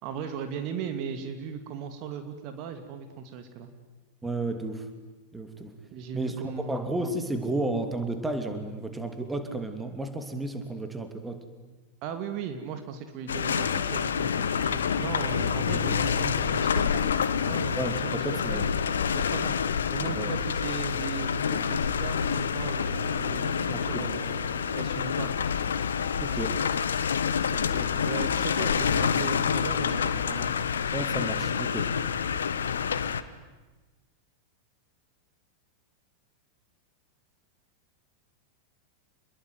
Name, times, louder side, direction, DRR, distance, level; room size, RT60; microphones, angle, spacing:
voice 1, 0.0-3.7 5.9-6.9 12.0-17.0 17.5-18.1 18.5-18.6 19.1-19.6 19.9-25.5 27.5-30.7, right 7 dB, 40° right, 7 dB, 2.6 m, -37 dB
voice 2, 4.2-4.9 5.3-5.7 6.1-6.4 6.7-11.4 15.9-16.0 17.8-18.7 20.1-20.3 23.7-24.1 26.2-26.6 30.9-31.9, right 2 dB, 10° right, 7 dB, 2.9 m, -32 dB
sound 1, 13.3-33.2, left 7 dB, 65° left, 1.2 m, -27 dB
sound 2, 13.5-20.6, left 7 dB, 45° left, 4.2 m, -43 dB
28.5 x 21.5 x 9.5 m, 1.2 s
figure-of-eight pair, 90°, 0 cm